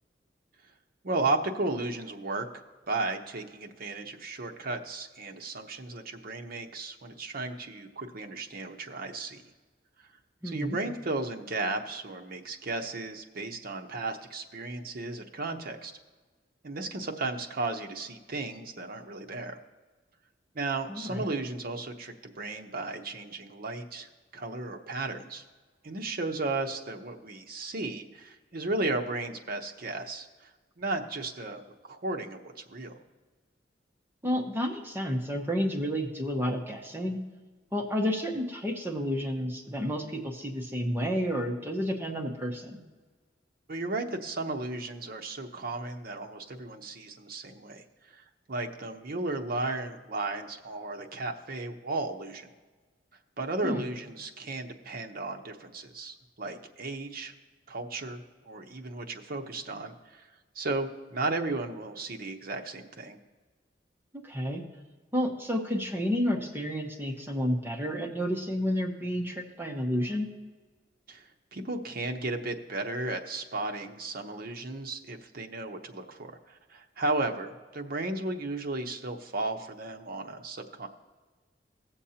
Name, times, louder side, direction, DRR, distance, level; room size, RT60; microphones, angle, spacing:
voice 1, 1.0-2.5 2.9-9.4 10.4-15.9 16.6-19.6 20.5-25.4 25.8-30.5 30.8-33.0 43.7-47.8 48.1-52.5 53.4-57.3 57.7-60.3 60.5-63.2 71.1-80.9, right 2 dB, 55° right, 3 dB, 0.8 m, -34 dB
voice 2, 10.4-10.8 20.9-21.3 34.2-37.2 37.7-42.8 53.6-53.8 64.1-64.6 65.1-70.3, equal, 15° right, 1 dB, 0.9 m, -30 dB
17.0 x 7.1 x 2.8 m, 1.3 s
head